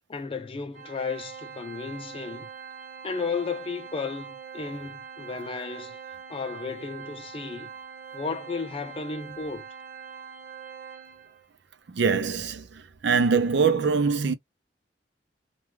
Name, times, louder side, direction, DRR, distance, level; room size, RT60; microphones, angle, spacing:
voice 1, 0.1-2.5 3.0-6.0 6.3-7.7 8.1-9.7, left 4 dB, 30° left, 0.4 m, -34 dB
Organ, 0.7-11.5, right 7 dB, 40° right, 0.8 m, -43 dB
voice 2, 11.9-14.3, right 5 dB, 70° right, 0.5 m, -23 dB
2.3 x 2.3 x 3.1 m
head